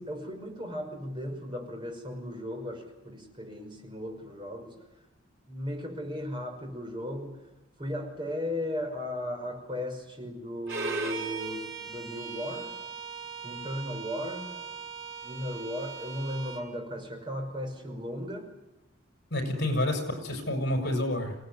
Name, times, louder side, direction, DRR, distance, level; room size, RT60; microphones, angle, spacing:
voice 1, 0.0-4.7 5.5-7.4 7.8-12.7 13.4-14.6 15.2-18.5 19.4-19.6, left 1 dB, 25° right, 2 dB, 5.6 m, -36 dB
Bowed string instrument, 10.7-16.7, right 4 dB, 70° right, 6.3 m, -38 dB
voice 2, 19.3-21.4, left 1 dB, 60° left, 4 dB, 6.6 m, -29 dB
26.5 x 18.5 x 9.7 m, 0.98 s
head